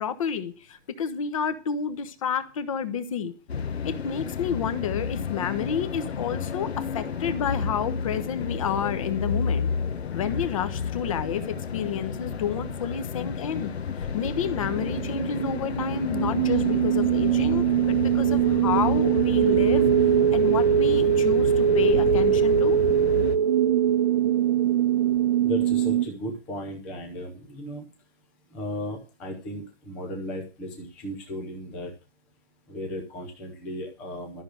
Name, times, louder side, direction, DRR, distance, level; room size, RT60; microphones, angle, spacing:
voice 1, 0.0-3.3 3.8-9.7 10.1-13.7 14.0-19.9 20.3-22.8, left 7 dB, 30° left, 1.1 m, -30 dB
sound 1, 3.5-23.4, left 6 dB, 65° left, 1.5 m, -31 dB
sound 2, 14.3-26.1, right 10 dB, 30° right, 0.9 m, -22 dB
voice 2, 25.4-27.8 28.5-31.9 32.7-34.4, left 1 dB, 5° left, 0.5 m, -35 dB
13.0 x 6.5 x 7.7 m
hypercardioid pair, 170°, 34 cm